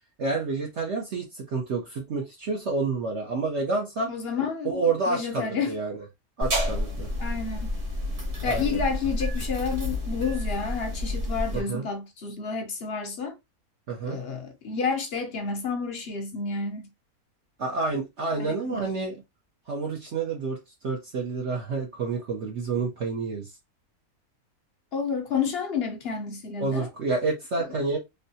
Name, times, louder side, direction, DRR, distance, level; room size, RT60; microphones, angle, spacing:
voice 1, 0.2-4.1 4.6-6.0 6.4-7.1 8.4-8.8 11.5-11.9 13.9-14.2 17.6-19.2 19.7-20.6 20.8-23.5 26.6-28.0, right 3 dB, 55° right, 1.0 m, -29 dB
voice 2, 4.1-5.7 7.2-7.8 8.4-13.3 14.0-16.9 18.4-18.8 24.9-26.9 27.7-27.8, left 5 dB, 55° left, 0.7 m, -30 dB
sound 1, 6.4-11.6, left 1 dB, 40° right, 1.4 m, -30 dB
3.3 x 2.7 x 2.7 m
omnidirectional pair, 1.6 m